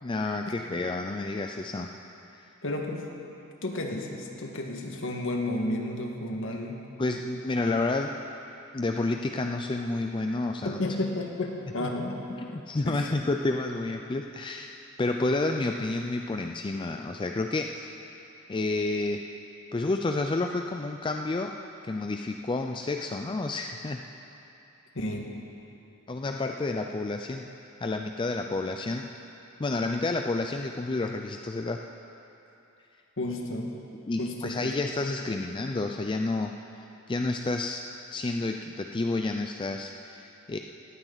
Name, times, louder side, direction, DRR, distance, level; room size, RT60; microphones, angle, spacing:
voice 1, 0.0-1.9 2.3-2.5 7.0-8.2 8.7-10.8 11.8-11.9 12.4-17.9 18.5-19.2 19.7-21.5 21.8-24.0 26.1-27.5 27.8-29.1 29.6-31.8 34.1-36.5 37.1-40.6, left 2 dB, 20° left, 4 dB, 0.4 m, -30 dB
voice 2, 2.6-3.0 3.6-6.8 10.6-12.2 12.9-13.1 24.9-25.4 33.2-33.7 34.2-34.7, left 1 dB, 65° left, 1 dB, 1.7 m, -32 dB
18.5 x 15.0 x 4.0 m, 2.9 s
head